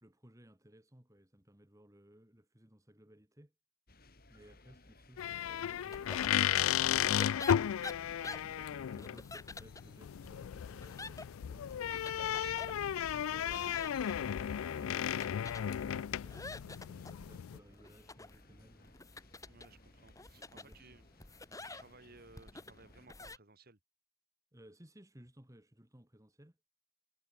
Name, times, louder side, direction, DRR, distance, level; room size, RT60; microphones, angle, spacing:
voice 1, 0.0-3.5 4.3-6.9 7.3-11.7 12.5-19.0 20.3-20.8 24.5-26.6, equal, 15° right, 2.1 m, -60 dB
sound 1, 3.9-23.1, left 2 dB, 45° left, 3.9 m, -62 dB
sound 2, 5.2-17.6, left 10 dB, 90° left, 0.4 m, -34 dB
sound 3, 5.9-23.4, left 3 dB, 15° left, 2.1 m, -50 dB
voice 2, 19.4-21.1 21.6-23.8, right 3 dB, 45° right, 2.6 m, -59 dB
head